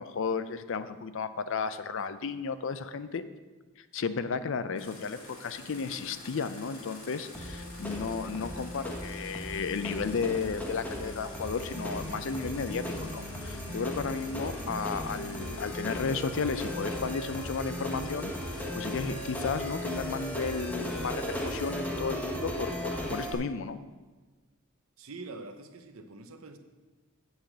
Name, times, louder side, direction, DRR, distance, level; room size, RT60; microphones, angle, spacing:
voice 1, 0.0-3.2 3.8-23.8, left 5 dB, 60° left, 12 dB, 0.5 m, -34 dB
sound 1, 4.8-21.7, left 1 dB, 85° left, 2.4 m, -48 dB
sound 2, 7.3-23.3, equal, 5° left, 1.0 m, -36 dB
voice 2, 25.0-26.6, right 3 dB, 75° right, 8 dB, 0.8 m, -44 dB
8.1 x 5.0 x 7.2 m, 1.3 s
head